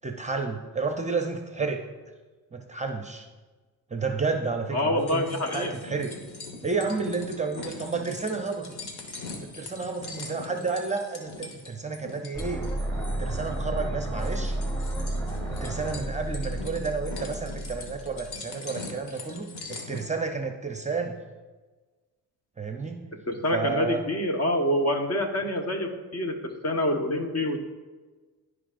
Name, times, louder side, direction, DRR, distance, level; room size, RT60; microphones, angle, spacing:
voice 1, 0.0-1.8 2.5-3.3 3.9-6.1 6.6-8.8 9.4-12.7 13.2-14.6 15.5-21.2 22.6-23.0 23.5-24.0, right 4 dB, 20° right, 4 dB, 0.7 m, -31 dB
voice 2, 4.7-5.7 23.3-26.3 26.6-27.6, left 1 dB, 40° left, 3 dB, 1.3 m, -26 dB
sound 1, 5.0-20.0, left 3 dB, 75° left, 1.5 m, -42 dB
sound 2, 12.3-18.3, right 1 dB, 10° left, 1.8 m, -32 dB
14.5 x 5.0 x 2.6 m, 1.3 s
cardioid pair, 70°, 40 cm